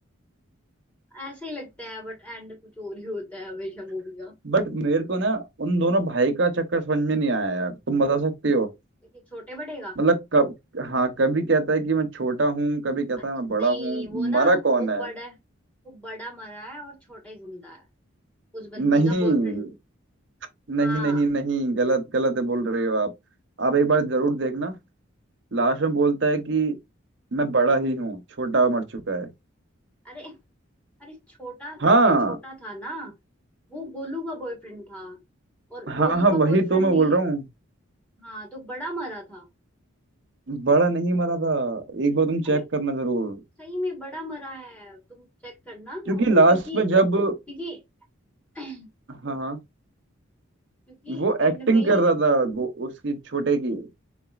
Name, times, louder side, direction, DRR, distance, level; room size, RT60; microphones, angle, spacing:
voice 1, 1.1-4.3 9.1-10.0 13.2-15.4 15.8-17.8 18.5-19.7 20.8-21.3 30.0-30.4 31.0-33.1 33.7-35.2 35.7-37.2 38.2-39.5 42.4-42.6 43.6-46.8 47.5-47.8 48.5-48.9 50.9-52.0, equal, 5° left, 1.4 m, -37 dB
voice 2, 4.4-8.7 10.0-15.1 18.8-19.7 20.7-23.1 23.6-24.7 25.5-26.7 27.3-29.3 31.8-32.4 35.9-37.4 40.5-43.4 46.1-47.3 49.2-49.6 51.1-53.9, right 3 dB, 60° right, 0.8 m, -22 dB
4.0 x 3.7 x 2.4 m
head